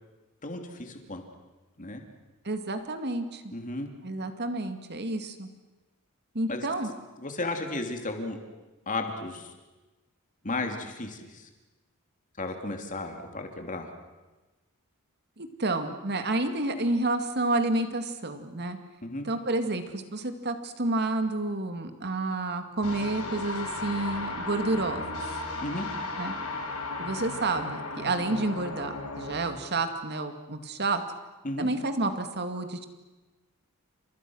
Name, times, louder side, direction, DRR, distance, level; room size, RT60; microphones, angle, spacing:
voice 1, 0.4-1.2 1.8-2.0 3.5-3.9 6.5-6.7 7.2-8.4 8.9-9.5 10.4-11.5 12.4-13.9 19.0-19.2 25.6-25.8 31.4-31.7, left 2 dB, 35° left, 4 dB, 2.9 m, -34 dB
voice 2, 2.4-3.4 4.0-5.5 6.3-6.9 15.4-18.8 19.2-25.2 26.2-26.3 27.0-31.0 31.6-32.9, right 2 dB, 50° right, 7 dB, 2.2 m, -30 dB
sound 1, 22.8-29.3, left 2 dB, 80° left, 5.1 m, -35 dB
29.5 x 27.0 x 6.4 m, 1.2 s
head